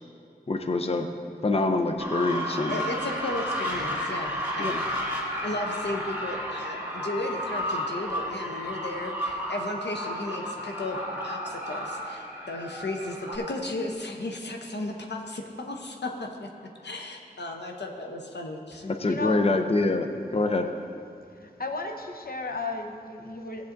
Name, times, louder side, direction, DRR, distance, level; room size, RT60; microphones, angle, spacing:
voice 1, 0.5-1.1 1.4-2.8 4.6-4.8 18.8-20.6, left 2 dB, 35° left, 5 dB, 0.5 m, -25 dB
sound 1, 2.0-13.4, equal, 10° right, 2.4 m, -32 dB
voice 2, 2.7-4.7 5.4-16.5 16.8-18.8, left 2 dB, 90° left, 1 dB, 0.7 m, -35 dB
voice 3, 19.0-19.4 21.4-23.7, left 3 dB, 60° left, 3 dB, 0.9 m, -34 dB
15.5 x 8.3 x 2.6 m, 2.5 s
wide cardioid pair, 40°, 17 cm